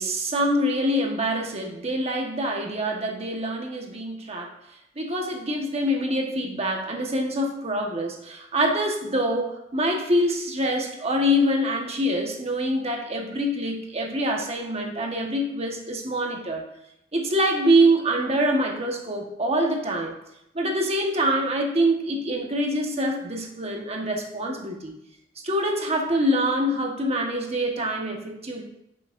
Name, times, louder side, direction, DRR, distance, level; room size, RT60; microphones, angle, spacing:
voice 1, 0.0-4.5 5.0-16.6 17.1-20.2 20.5-25.0 25.4-28.6, equal, 35° right, 1 dB, 1.3 m, -25 dB
9.6 x 7.5 x 2.6 m, 0.81 s
head